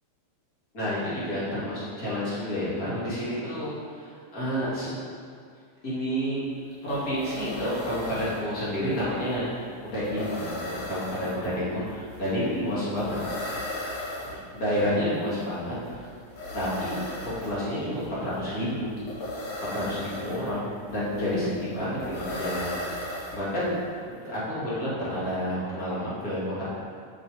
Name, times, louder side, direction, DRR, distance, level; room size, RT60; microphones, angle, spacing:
voice 1, 0.7-4.9 5.8-6.4 6.8-9.5 9.9-13.2 13.5-13.6 14.2-16.1 16.5-17.0 17.2-18.9 19.7-23.8 24.1-26.6, equal, 30° left, -10 dB, 2.6 m, -30 dB
sound 1, 6.4-6.5 6.7-23.8, left 1 dB, 90° left, 3.3 m, -37 dB
9.0 x 6.8 x 3.5 m, 2.2 s
omnidirectional pair, 3.5 m